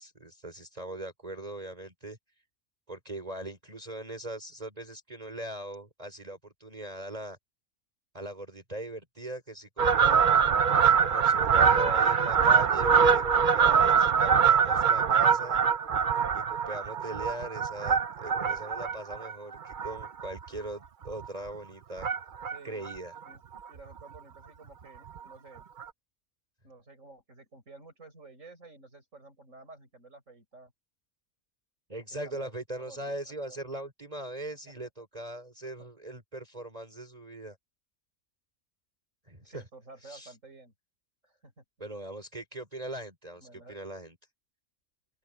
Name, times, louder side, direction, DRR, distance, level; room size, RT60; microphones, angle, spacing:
voice 1, 0.0-2.2 2.9-7.4 8.1-10.3 11.0-15.6 16.3-22.1 22.6-23.1 31.9-37.6 39.2-39.6 40.0-40.4 41.8-44.1, right 1 dB, 30° right, 5.0 m, -40 dB
Fowl, 9.8-20.6 21.0-21.3 22.0-22.6 22.8-22.9 23.2-23.3 23.6-23.7 24.0-24.2 25.2-25.3 25.8-25.9, right 7 dB, 45° right, 0.8 m, -24 dB
voice 2, 22.5-22.9 23.2-23.4 23.7-25.7 26.6-30.7 32.2-32.5 32.8-33.6 39.4-40.7 41.2-41.9 43.4-43.8, right 3 dB, 75° right, 6.9 m, -52 dB
open air
omnidirectional pair, 1.3 m